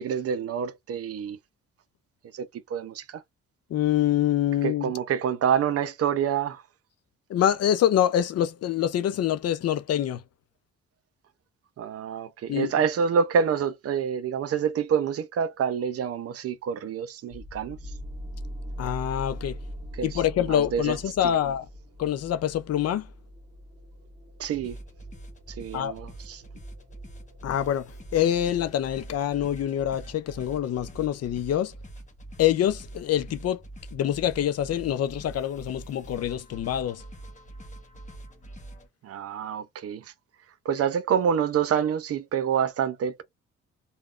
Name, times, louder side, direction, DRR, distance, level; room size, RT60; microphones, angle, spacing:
voice 1, 0.0-1.4 2.3-3.2 4.6-6.6 11.8-17.8 19.9-20.1 20.5-21.0 21.2-21.4 24.4-24.8 25.5-26.4 39.0-40.1 40.7-43.2, right 7 dB, 55° right, 0.5 m, -27 dB
voice 2, 3.7-4.9 7.3-10.2 12.5-12.8 18.8-19.6 20.0-21.7 22.0-23.1 25.7-25.9 27.4-31.7 32.4-33.6 33.9-37.0, left 11 dB, 55° left, 0.5 m, -25 dB
sound 1, 17.3-29.2, equal, 20° right, 1.3 m, -42 dB
sound 2, 24.4-38.9, right 1 dB, 25° left, 1.1 m, -44 dB
3.5 x 2.3 x 2.4 m
cardioid pair, 90°, 30 cm